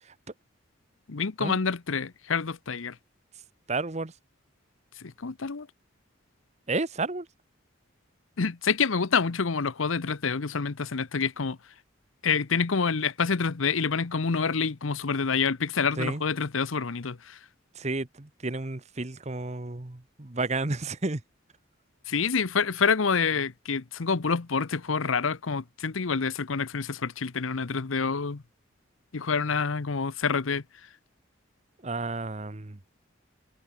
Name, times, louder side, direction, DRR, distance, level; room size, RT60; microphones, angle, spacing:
voice 1, 1.1-2.9 5.0-5.7 8.4-11.6 12.2-17.4 22.1-28.4 29.1-30.6, left 5 dB, 85° left, 0.9 m, -27 dB
voice 2, 3.7-4.1 6.7-7.3 16.0-16.2 17.7-21.2 31.8-32.8, right 3 dB, 35° right, 1.1 m, -31 dB
head